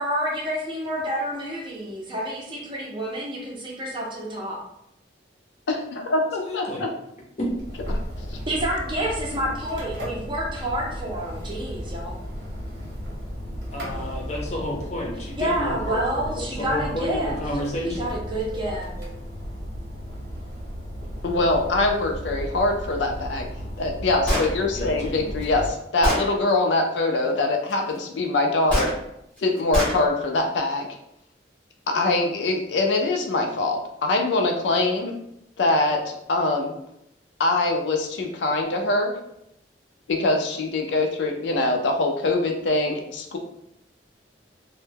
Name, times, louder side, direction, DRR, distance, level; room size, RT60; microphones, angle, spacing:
voice 1, 0.0-4.6 8.5-12.2 15.4-17.4 17.9-18.9, right 1 dB, 25° right, -2 dB, 0.5 m, -28 dB
voice 2, 5.7-6.9 21.2-23.5 23.8-28.9 29.4-30.9 31.9-35.1 35.6-36.7 37.4-39.1 40.1-43.4, left 2 dB, 80° left, 3 dB, 0.4 m, -23 dB
voice 3, 6.4-6.9 7.4-7.5 13.7-18.2 24.7-25.4, left 1 dB, 40° left, -1 dB, 0.6 m, -31 dB
sound 1, 7.4-25.7, equal, 90° right, 0.8 m, -35 dB
Gunshot gunfire, 24.3-24.5 25.4-25.5 26.0-26.3 28.7-28.9 29.7-30.0, equal, 5° left, 0.7 m, -23 dB
2.1 x 2.1 x 3.2 m, 0.79 s
head